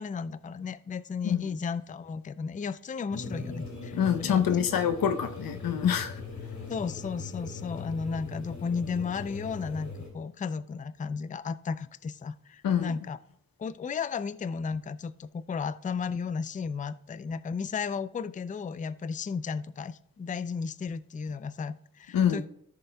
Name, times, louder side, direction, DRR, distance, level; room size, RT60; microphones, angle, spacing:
voice 1, 0.0-4.4 6.7-13.2 13.6-22.5, left 5 dB, 25° left, 15 dB, 0.4 m, -34 dB
sound 1, 3.1-10.1, left 3 dB, 55° left, 2.6 m, -40 dB
voice 2, 3.9-6.2 12.6-12.9 22.1-22.4, left 8 dB, 90° left, 8 dB, 0.8 m, -26 dB
14.0 x 6.7 x 2.3 m, 0.70 s
cardioid pair, 60°, 33 cm